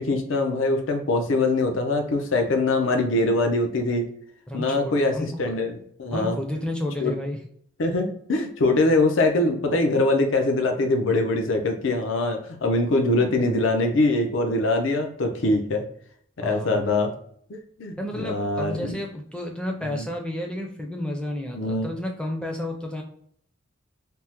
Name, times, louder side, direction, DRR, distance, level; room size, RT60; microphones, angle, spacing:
voice 1, 0.0-4.1 4.5-6.4 7.0-7.1 7.8-15.8 16.4-17.1 17.5-19.0 19.8-20.0 21.5-21.9, left 2 dB, 75° left, 4 dB, 0.5 m, -23 dB
voice 2, 4.5-5.6 6.1-7.4 16.4-16.8 18.0-23.0, left 1 dB, 5° left, 1 dB, 0.4 m, -31 dB
3.4 x 2.0 x 2.8 m, 0.63 s
head